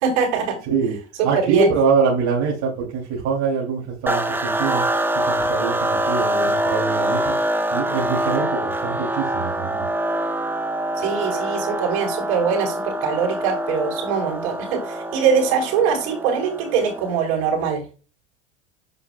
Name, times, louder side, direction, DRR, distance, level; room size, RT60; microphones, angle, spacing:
voice 1, 0.0-0.6 1.2-1.7 11.0-17.8, right 6 dB, 70° right, 1 dB, 4.7 m, -22 dB
voice 2, 0.7-1.0 1.2-4.8 5.2-7.3 7.7-9.9, right 5 dB, 55° right, -4 dB, 3.1 m, -23 dB
sound 1, 4.1-17.4, right 1 dB, 5° right, 1.2 m, -25 dB
8.3 x 7.7 x 2.3 m, 0.34 s
hypercardioid pair, 100°, 34 cm